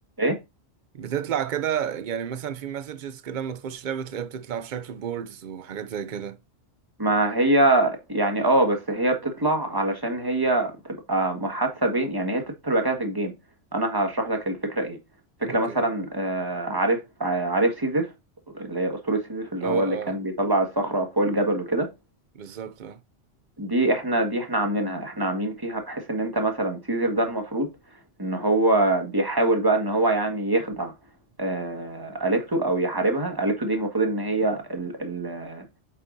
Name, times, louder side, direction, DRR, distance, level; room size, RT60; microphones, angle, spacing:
voice 1, 0.9-6.4 15.4-15.8 19.6-20.2 22.3-23.0, right 9 dB, 50° right, 0.7 m, -31 dB
voice 2, 7.0-10.7 11.1-13.3 13.7-15.0 15.4-18.1 18.5-21.9 23.6-27.7 28.2-30.9 31.4-35.6, right 2 dB, 20° right, 1.7 m, -24 dB
8.1 x 7.3 x 2.7 m
omnidirectional pair, 1.2 m